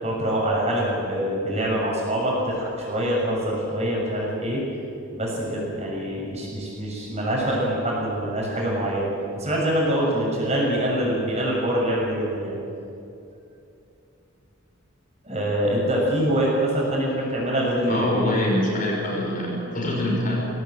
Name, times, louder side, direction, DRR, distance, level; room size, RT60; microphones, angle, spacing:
voice 1, 0.0-4.6 5.1-9.1 9.4-12.5 15.2-18.5, right 1 dB, 30° right, -3 dB, 6.7 m, -25 dB
voice 2, 17.9-20.5, left 1 dB, 40° left, -2 dB, 6.0 m, -24 dB
21.5 x 18.0 x 9.0 m, 2.7 s
head